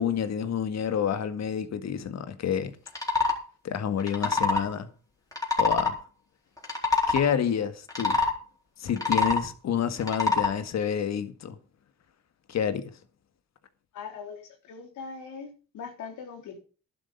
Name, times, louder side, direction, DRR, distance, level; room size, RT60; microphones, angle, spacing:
voice 1, 0.0-2.8 3.6-4.9 5.5-6.0 7.1-8.2 8.8-11.6 12.5-12.9, left 8 dB, 60° left, 1.8 m, -28 dB
sound 1, 2.9-3.4 4.0-4.7 5.3-5.9 6.6-7.2 7.9-8.3 8.9-9.5 10.0-10.5, left 3 dB, 10° left, 4.0 m, -25 dB
voice 2, 13.9-16.6, left 5 dB, 80° left, 3.6 m, -41 dB
11.5 x 11.0 x 5.3 m
cardioid pair, 90°, 30 cm